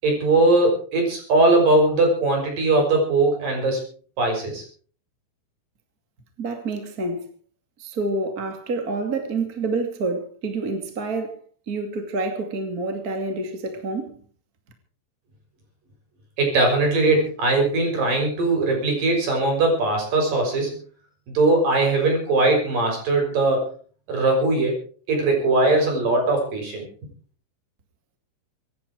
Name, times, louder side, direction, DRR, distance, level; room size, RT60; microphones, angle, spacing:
voice 1, 0.0-3.8 4.2-4.6 16.4-20.8 21.3-23.7 24.1-24.8 25.1-26.8, right 2 dB, 50° right, 7.6 m, -20 dB
voice 2, 6.4-7.3 7.8-11.4 11.7-14.1, right 3 dB, 30° right, 1.8 m, -28 dB
25.0 x 11.0 x 4.7 m
omnidirectional pair, 5.3 m